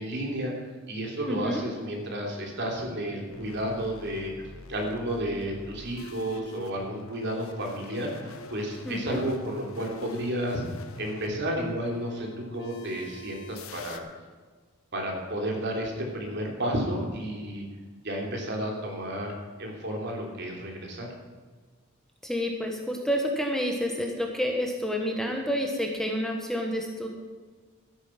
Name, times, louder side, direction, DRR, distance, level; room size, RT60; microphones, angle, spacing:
voice 1, 0.0-4.3 4.7-10.6 11.0-14.0 14.9-17.6 18.0-19.3 19.6-21.1, equal, 55° right, 0 dB, 3.2 m, -32 dB
voice 2, 1.3-1.6 8.8-9.2 22.2-27.1, equal, ahead, 1 dB, 1.3 m, -29 dB
sound 1, 3.3-14.0, left 3 dB, 85° left, 1.1 m, -44 dB
13.0 x 10.5 x 5.8 m, 1.5 s
head